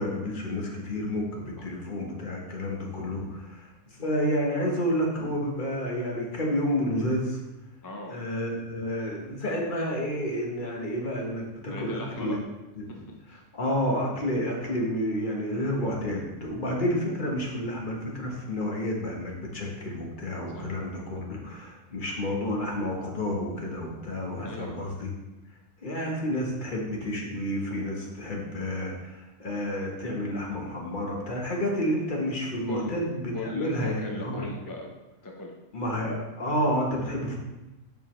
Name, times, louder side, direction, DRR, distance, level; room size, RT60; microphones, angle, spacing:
voice 1, 0.0-3.7 4.0-7.4 8.1-12.4 12.8-12.9 13.5-25.1 25.8-34.5 35.7-37.4, equal, 40° left, -1 dB, 1.2 m, -30 dB
voice 2, 7.8-8.2 11.7-12.5 12.9-13.4 20.5-20.7 24.4-24.8 32.7-33.0 33.3-34.9 35.2-35.5, left 2 dB, 25° left, 0 dB, 0.5 m, -38 dB
7.2 x 5.3 x 3.1 m, 1.0 s
omnidirectional pair, 1.3 m